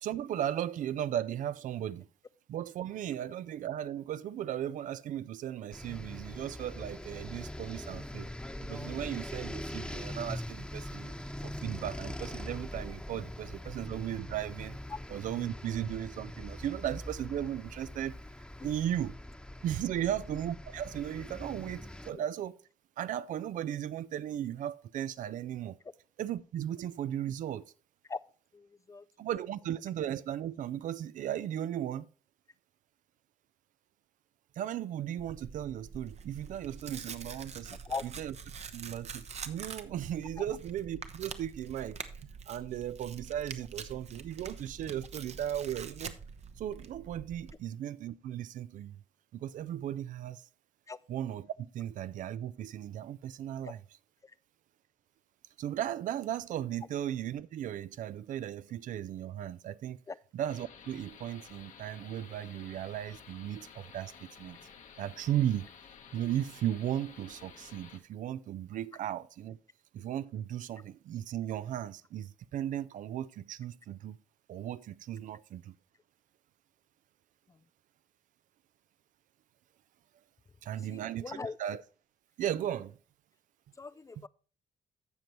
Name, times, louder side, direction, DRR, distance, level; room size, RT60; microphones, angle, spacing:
voice 1, 0.0-2.1 2.5-8.3 8.6-11.1 11.4-14.8 15.1-18.1 18.6-19.1 19.6-22.6 23.0-25.8 26.2-27.7 29.2-32.1 34.6-37.8 38.0-38.3 38.7-42.0 42.5-46.1 46.6-49.0 49.3-50.4 51.1-53.8 55.6-60.0 60.3-64.6 65.0-65.7 66.1-69.6 69.9-74.2 74.5-75.7 80.6-81.8 82.4-83.0 84.2-84.3, right 11 dB, 65° right, 0.5 m, -36 dB
sound 1, 5.7-22.1, left 1 dB, 5° left, 1.0 m, -42 dB
voice 2, 28.5-29.1 37.8-38.0 40.4-40.5 50.9-51.0 53.6-53.7 54.2-54.3 60.1-60.2 77.5-77.6 80.7-81.6 83.8-84.3, left 4 dB, 20° left, 0.3 m, -40 dB
Tearing, 35.2-47.5, right 6 dB, 50° right, 0.9 m, -45 dB
sound 2, 60.5-68.0, left 7 dB, 60° left, 1.2 m, -53 dB
15.5 x 5.3 x 3.0 m
supercardioid pair, 70°, 14 cm